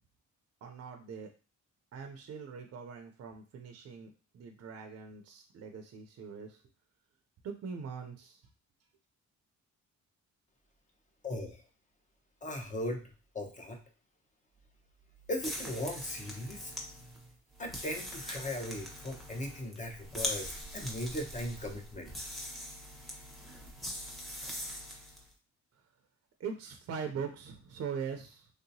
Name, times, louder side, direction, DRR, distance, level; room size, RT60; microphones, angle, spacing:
voice 1, 0.6-1.3 1.9-6.6 7.4-8.4 26.4-28.5, right 6 dB, 55° right, 5 dB, 0.6 m, -42 dB
voice 2, 11.2-11.6 12.4-13.0 13.3-13.8 15.3-16.7 17.6-22.1, left 1 dB, 25° left, 2 dB, 0.9 m, -38 dB
sound 1, 15.4-25.3, equal, ahead, 1.0 m, -42 dB
3.3 x 2.8 x 2.7 m, 0.34 s
cardioid pair, 90°, 30 cm